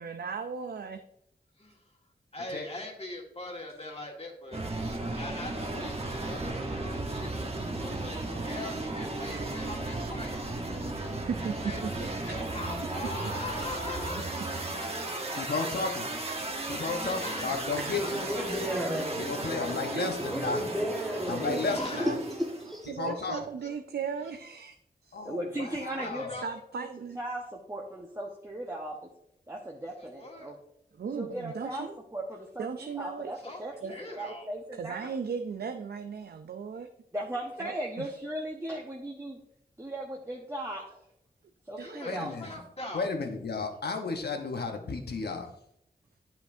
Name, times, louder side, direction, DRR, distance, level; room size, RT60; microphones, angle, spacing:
voice 1, 0.0-1.0 10.9-11.7 12.3-12.4 14.9-15.0 17.7-18.0 19.4-19.5 19.9-20.2 21.5-22.2 22.9-24.8 25.0-25.3 26.4-27.2 30.9-32.0 32.6-34.0 34.7-36.9 37.6-38.1 41.8-42.3, right 6 dB, 80° right, 0.5 m, -37 dB
voice 2, 2.3-4.6 5.2-7.4 7.8-10.4 11.4-14.2 17.0-17.7 19.1-19.8 21.7-22.1 23.3-23.7 26.0-26.5 30.0-30.5 33.4-33.6 33.9-34.5 41.8-43.1, left 2 dB, 40° left, 1.8 m, -41 dB
sound 1, 4.5-22.8, right 2 dB, 40° right, 1.1 m, -35 dB
voice 3, 15.3-16.1 16.7-18.2 19.2-20.6 21.3-22.2 23.0-23.4 25.1-26.4 42.0-42.6 42.9-45.5, left 4 dB, 85° left, 1.0 m, -33 dB
voice 4, 17.9-19.3 20.2-21.6 22.0-22.9, equal, ahead, 1.4 m, -33 dB
voice 5, 25.2-26.3 27.2-29.0 29.5-30.6 31.2-33.7 34.0-35.1 37.1-39.4 39.8-41.0 41.7-42.3, right 1 dB, 15° right, 1.1 m, -37 dB
10.0 x 5.9 x 2.7 m
cardioid pair, 60°, 16 cm